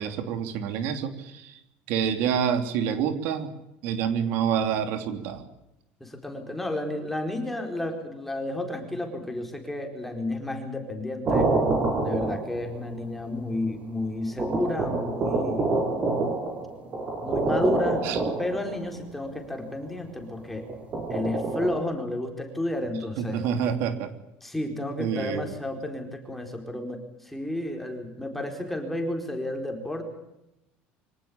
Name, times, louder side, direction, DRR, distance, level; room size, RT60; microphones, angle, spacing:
voice 1, 0.0-1.6 1.9-3.5 3.8-5.5 18.0-18.2 23.2-24.1 25.0-25.5, right 8 dB, 65° right, 8 dB, 3.1 m, -27 dB
voice 2, 6.0-11.5 12.0-15.7 17.2-18.1 18.4-20.7 21.1-23.4 24.4-30.0, left 1 dB, 5° left, 4 dB, 4.3 m, -31 dB
sound 1, 11.3-12.8 13.7-13.8 14.4-18.9 20.7-21.8, right 3 dB, 30° right, 5.7 m, -27 dB
24.5 x 18.5 x 8.6 m, 0.87 s
cardioid pair, 160°, 4 cm